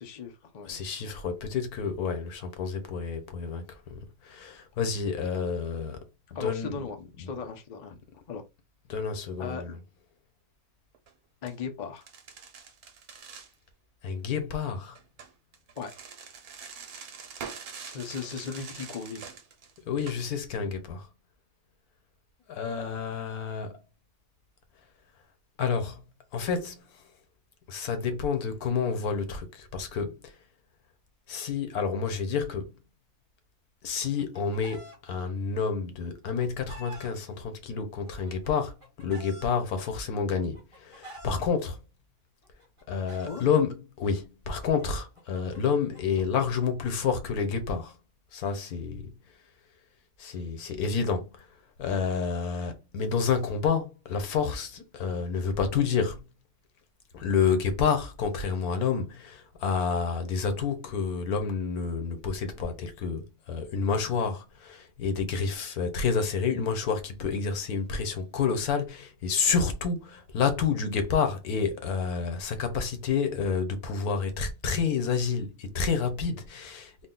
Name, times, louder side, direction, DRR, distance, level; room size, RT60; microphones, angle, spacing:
voice 1, 0.0-0.8 6.3-7.9 8.3-8.4 9.4-9.8 11.4-12.1 15.8-15.9 17.8-19.2 43.2-43.4, left 5 dB, 45° left, 0.5 m, -37 dB
voice 2, 0.7-3.6 3.9-4.0 4.2-6.0 6.4-6.7 8.9-9.7 14.0-15.0 19.9-21.0 22.5-23.8 25.6-26.0 26.3-26.8 27.7-30.1 31.3-32.7 33.8-41.8 42.9-47.9 48.3-49.0 50.2-51.3 51.8-56.2 57.1-76.9, left 6 dB, 75° left, 1.3 m, -29 dB
sound 1, 10.9-11.1 11.5-11.6 12.0-13.5 15.0-20.3, right 6 dB, 80° right, 1.3 m, -44 dB
Chicken rooster, 33.8-35.0 36.0-37.1 38.1-39.5 40.4-41.4 42.4-43.5 44.6-47.9, right 1 dB, 20° right, 1.5 m, -49 dB
3.9 x 2.3 x 3.7 m
omnidirectional pair, 1.6 m